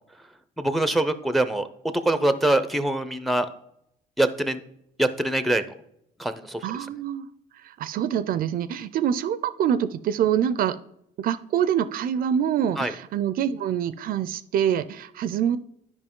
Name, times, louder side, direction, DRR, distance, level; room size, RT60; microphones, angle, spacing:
voice 1, 0.6-3.5 4.2-4.6 5.0-5.6 6.2-6.7 12.8-12.9, right 1 dB, ahead, 11 dB, 0.5 m, -24 dB
voice 2, 6.6-7.3 7.6-10.8 11.2-15.6, right 9 dB, 60° right, 15 dB, 0.4 m, -25 dB
10.5 x 5.1 x 3.7 m, 0.76 s
cardioid pair, 110°, 17 cm